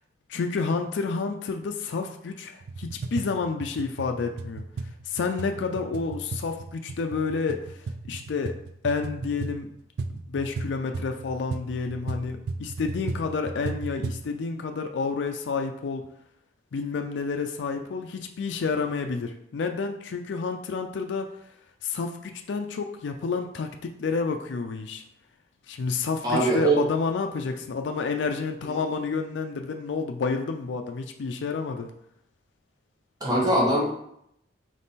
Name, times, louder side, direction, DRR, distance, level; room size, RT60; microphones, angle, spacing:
voice 1, 0.3-4.7 5.1-8.5 8.8-9.7 10.1-16.1 16.7-21.3 21.8-25.0 25.7-31.9, left 4 dB, 75° left, 5 dB, 0.4 m, -30 dB
sound 1, 2.6-14.3, right 3 dB, 60° right, 0.3 m, -35 dB
voice 2, 26.2-26.8 33.2-34.0, right 1 dB, 20° right, -4 dB, 1.1 m, -22 dB
3.6 x 3.2 x 4.1 m, 0.75 s
head